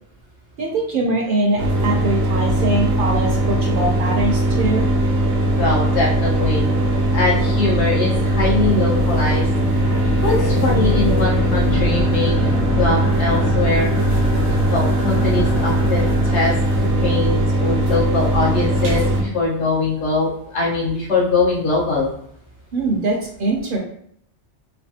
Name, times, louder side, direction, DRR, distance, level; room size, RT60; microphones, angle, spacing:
voice 1, 0.6-4.9 22.7-23.8, right 2 dB, 60° right, 0 dB, 0.6 m, -22 dB
sound 1, 1.6-19.2, right 1 dB, 90° right, 0.9 m, -19 dB
voice 2, 5.6-6.7 7.1-9.5 10.2-12.5 12.8-13.9 14.7-16.5 16.8-22.1, left 3 dB, 75° left, -4 dB, 1.2 m, -22 dB
sound 2, 6.9-17.5, left 2 dB, 25° left, 0.6 m, -27 dB
3.2 x 2.2 x 2.7 m, 0.69 s
omnidirectional pair, 1.2 m